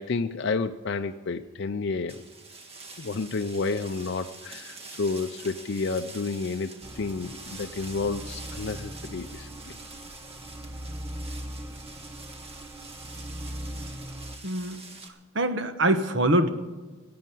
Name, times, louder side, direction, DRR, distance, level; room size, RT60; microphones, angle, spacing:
voice 1, 0.0-2.2 3.0-9.7, left 4 dB, 55° left, 6 dB, 0.5 m, -30 dB
sound 1, 2.1-15.1, right 3 dB, 30° right, 1.7 m, -45 dB
sound 2, 6.8-14.4, equal, 15° right, 0.7 m, -40 dB
voice 2, 14.4-14.8 15.3-16.5, right 1 dB, 60° right, 8 dB, 1.2 m, -24 dB
16.5 x 8.6 x 9.1 m, 1.3 s
head